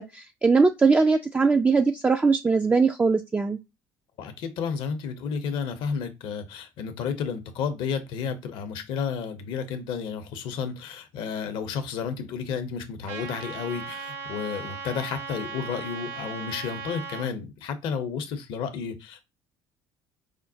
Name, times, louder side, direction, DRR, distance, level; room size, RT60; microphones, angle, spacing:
voice 1, 0.0-3.6, right 4 dB, 15° right, 0.3 m, -21 dB
voice 2, 4.2-19.2, left 6 dB, 55° left, 0.7 m, -32 dB
Trumpet, 13.1-17.3, right 5 dB, 65° right, 1.0 m, -37 dB
4.9 x 2.1 x 2.7 m
figure-of-eight pair, 55°, 10 cm